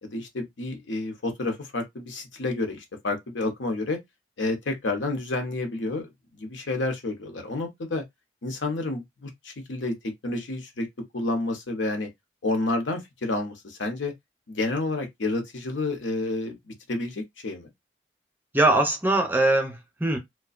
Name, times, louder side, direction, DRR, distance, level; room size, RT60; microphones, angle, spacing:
voice 1, 0.0-4.0 4.4-6.1 6.4-8.0 8.4-12.1 12.4-14.1 14.5-17.7, left 2 dB, 90° left, 0.8 m, -30 dB
voice 2, 18.5-20.2, right 2 dB, 10° right, 0.5 m, -22 dB
2.4 x 2.2 x 2.4 m
head